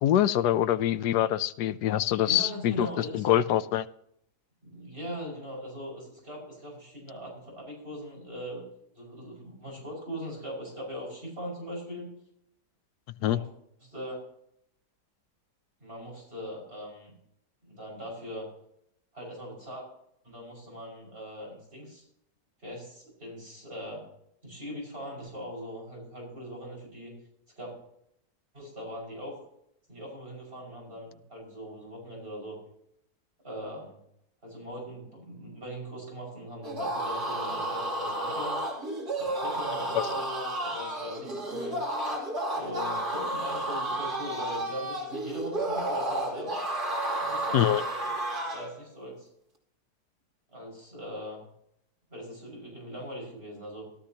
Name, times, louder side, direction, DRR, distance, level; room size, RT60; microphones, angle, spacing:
voice 1, 0.0-3.9 13.2-13.4 40.0-40.1 47.5-47.8, left 12 dB, 80° left, 12 dB, 1.2 m, -25 dB
voice 2, 2.2-3.4 4.6-8.7 8.9-12.1 13.2-13.5 13.8-14.2 15.8-17.2 17.6-18.5 19.1-19.9 20.2-22.0 22.6-24.1 24.4-27.1 27.6-27.7 28.5-29.4 29.9-32.6 33.4-34.0 34.4-38.6 39.2-41.8 42.5-46.6 47.2-48.2 48.5-49.3 50.5-51.4 52.1-53.9, equal, 35° right, -2 dB, 6.1 m, -40 dB
sound 1, 36.6-48.7, right 1 dB, 65° right, 3.3 m, -32 dB
16.0 x 13.0 x 2.9 m, 0.72 s
omnidirectional pair, 1.8 m